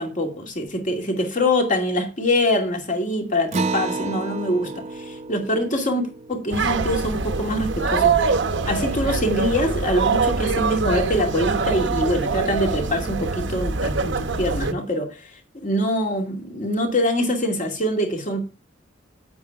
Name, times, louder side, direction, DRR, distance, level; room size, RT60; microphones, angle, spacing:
voice 1, 0.0-8.3 8.7-18.4, left 1 dB, 45° left, 2.4 m, -24 dB
Acoustic guitar, 3.5-8.4, right 3 dB, 35° right, 0.7 m, -32 dB
sound 1, 6.5-14.7, right 4 dB, 70° right, 0.9 m, -24 dB
9.2 x 8.6 x 4.6 m
head